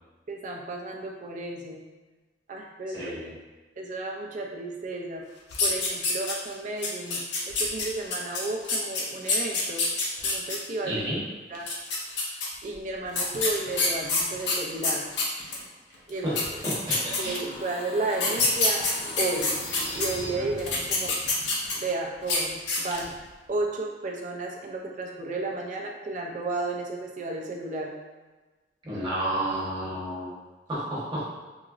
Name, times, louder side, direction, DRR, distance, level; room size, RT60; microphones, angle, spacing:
voice 1, 0.3-1.8 2.5-3.1 3.8-5.2 5.6-7.2 7.5-9.9 10.2-11.0 11.5-11.6 12.6-15.0 16.1-16.4 17.2-18.9 19.2-19.5 19.9-21.1 21.8-23.1 23.5-27.9, right 2 dB, 45° right, 0 dB, 0.4 m, -33 dB
voice 2, 2.9-3.3 10.8-11.2 16.2-16.3 16.6-17.3 28.8-30.3 30.7-31.2, right 1 dB, 25° right, -9 dB, 1.0 m, -31 dB
sound 1, 5.5-6.5 6.8-10.6 11.5-12.5 13.1-15.6 16.1-16.2 16.3-17.6 18.1-20.1 20.6-21.9 22.2-22.4 22.7-23.1, left 3 dB, 70° left, 0.6 m, -27 dB
sound 2, 16.8-21.1, left 1 dB, 40° left, 0.9 m, -39 dB
3.8 x 2.0 x 2.4 m, 1.3 s
head